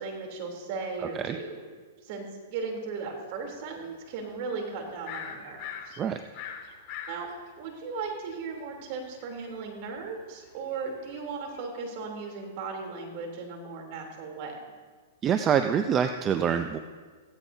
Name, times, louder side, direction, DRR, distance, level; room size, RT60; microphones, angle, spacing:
voice 1, 0.0-1.6 2.0-6.0 7.1-7.3 7.6-14.5, right 4 dB, 50° right, 1 dB, 3.4 m, -37 dB
sound 1, 3.8-4.3 4.7-8.3 8.8-11.6, left 8 dB, 35° left, 2.2 m, -42 dB
voice 2, 15.2-16.8, right 8 dB, 25° right, 8 dB, 0.6 m, -25 dB
16.5 x 16.0 x 2.8 m, 1.5 s
hypercardioid pair, 130°, 0 cm